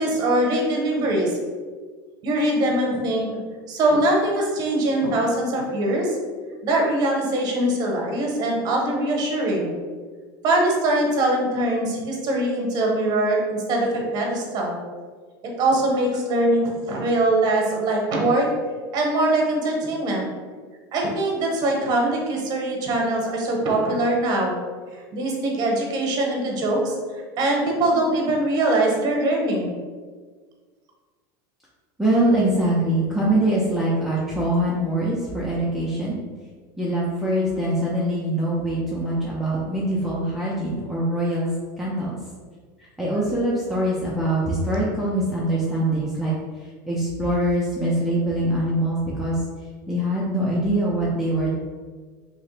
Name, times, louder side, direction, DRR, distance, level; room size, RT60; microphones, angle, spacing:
voice 1, 0.0-1.3 2.2-3.3 3.7-6.2 6.6-9.7 10.4-14.8 15.6-18.5 18.9-20.3 20.9-24.6 24.9-29.7, right 1 dB, 35° right, 0 dB, 0.8 m, -22 dB
voice 2, 32.0-36.2 36.8-41.5 41.8-42.1 42.8-46.3 46.6-49.4 49.9-51.5, right 1 dB, ahead, -7 dB, 0.4 m, -23 dB
3.1 x 2.8 x 3.1 m, 1.5 s
supercardioid pair, 155°, 12 cm